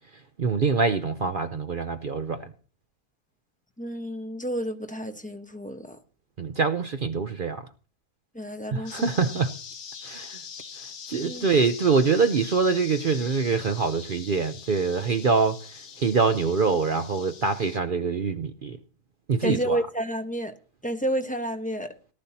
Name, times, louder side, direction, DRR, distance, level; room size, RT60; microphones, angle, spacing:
voice 1, 0.4-2.5 6.4-7.7 8.7-9.5 10.0-10.4 10.8-18.8 19.3-19.8, right 5 dB, 50° right, 0.6 m, -25 dB
voice 2, 3.8-6.0 8.3-9.0 11.1-11.5 19.4-20.5 20.8-21.9, right 1 dB, 5° left, 0.9 m, -30 dB
sound 1, 8.9-17.8, left 6 dB, 70° left, 1.4 m, -43 dB
18.0 x 12.0 x 2.8 m
omnidirectional pair, 1.6 m